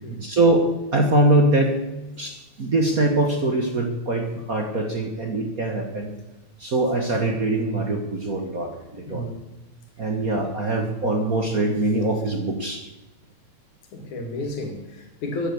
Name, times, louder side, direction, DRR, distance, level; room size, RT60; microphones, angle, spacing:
voice 1, 0.2-1.7 2.1-6.1 6.6-9.3 10.0-12.8, right 2 dB, 40° right, 3 dB, 1.4 m, -23 dB
voice 2, 9.1-9.4 13.9-15.5, left 1 dB, 85° left, 4 dB, 3.8 m, -31 dB
15.5 x 9.8 x 7.1 m, 1.0 s
omnidirectional pair, 3.3 m